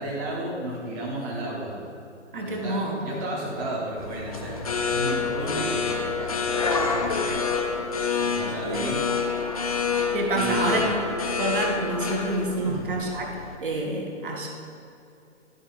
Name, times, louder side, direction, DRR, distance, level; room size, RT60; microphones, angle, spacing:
voice 1, 0.0-1.8 2.4-7.3 8.2-9.0 10.3-10.8 12.6-12.9, right 1 dB, 15° right, -5 dB, 0.8 m, -33 dB
voice 2, 2.3-3.0 7.3-7.4 8.7-8.9 10.1-11.0 11.3-13.3 13.6-14.5, right 2 dB, 45° right, 1 dB, 1.1 m, -28 dB
sound 1, 4.0-13.6, left 5 dB, 30° left, 0.4 m, -28 dB
11.0 x 4.3 x 4.0 m, 2.7 s
figure-of-eight pair, 135°, 37 cm